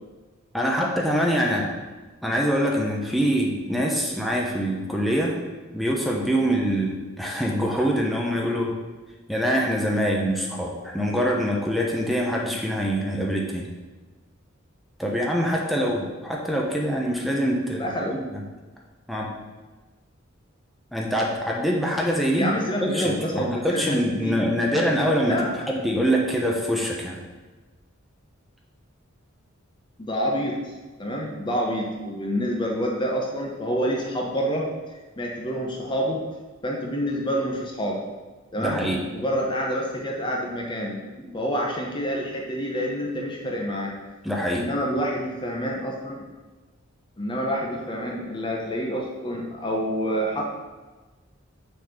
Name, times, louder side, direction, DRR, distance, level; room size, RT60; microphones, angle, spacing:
voice 1, 0.5-1.8 2.2-5.3 5.7-8.7 9.3-13.7 15.0-17.9 19.1-19.3 20.9-22.5 22.8-25.4 25.7-27.2 38.6-39.0 41.2-41.3 44.2-44.6, equal, ahead, -2 dB, 1.0 m, -24 dB
voice 2, 17.8-18.2 22.3-24.4 25.3-25.7 30.0-30.7 31.0-36.2 36.6-38.0 38.5-38.8 39.1-41.0 41.3-43.9 44.5-46.2 47.2-50.4, equal, 25° left, -1 dB, 0.9 m, -27 dB
6.7 x 4.2 x 6.6 m, 1.3 s
head